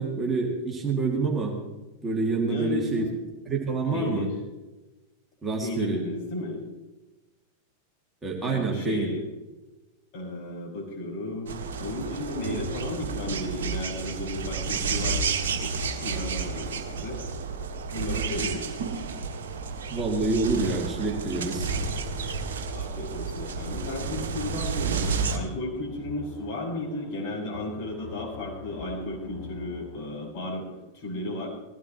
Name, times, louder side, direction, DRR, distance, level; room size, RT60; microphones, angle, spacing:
voice 1, 0.0-1.6 2.0-3.0 3.5-4.3 5.4-6.0 8.2-9.1 19.9-21.7, right 3 dB, 15° right, -1 dB, 2.4 m, -27 dB
voice 2, 2.4-3.1 3.9-4.3 5.6-6.6 8.4-9.3 10.1-17.2 17.9-19.0 22.7-30.7 30.9-31.5, left 2 dB, 45° left, -4 dB, 6.1 m, -34 dB
sound 1, 11.5-25.4, right 5 dB, 60° right, 1.4 m, -31 dB
sound 2, 20.8-30.3, left 5 dB, 15° left, 1.8 m, -46 dB
19.5 x 16.0 x 3.1 m, 1.1 s
figure-of-eight pair, 90°, 0 cm